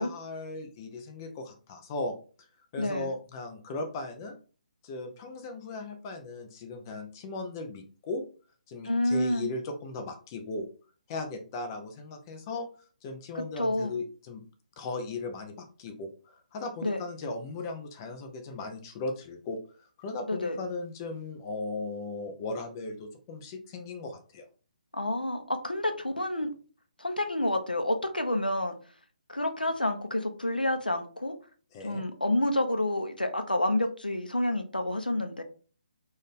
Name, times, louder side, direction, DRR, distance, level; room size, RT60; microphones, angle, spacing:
voice 1, 0.0-2.2 2.7-4.3 4.8-8.2 8.7-10.7 11.1-12.7 13.0-14.4 14.8-24.4 31.7-32.0, left 2 dB, 25° left, 6 dB, 0.6 m, -37 dB
voice 2, 2.8-3.1 8.8-9.5 13.6-13.9 16.8-17.0 20.3-20.6 24.9-26.5 27.0-28.7 29.3-31.3 31.8-35.4, left 1 dB, 85° left, 6 dB, 0.8 m, -29 dB
3.9 x 2.6 x 3.6 m, 0.38 s
figure-of-eight pair, 140°, 5 cm